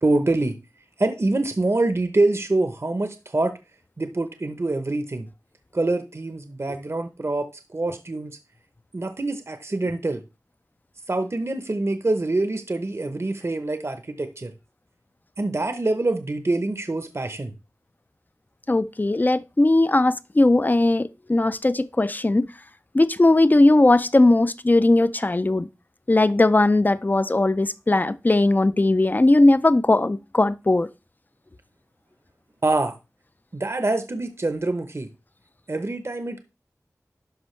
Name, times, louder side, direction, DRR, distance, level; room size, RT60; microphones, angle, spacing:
voice 1, 0.0-0.6 1.0-3.5 4.0-5.3 5.7-8.4 8.9-10.2 11.1-14.5 15.4-17.5 32.6-32.9 33.5-35.1 35.7-36.4, right 2 dB, 45° right, 0.8 m, -25 dB
voice 2, 18.7-22.5 22.9-25.7 26.1-30.9, left 2 dB, 30° left, 0.4 m, -18 dB
11.5 x 5.2 x 3.2 m
wide cardioid pair, 50°, 6 cm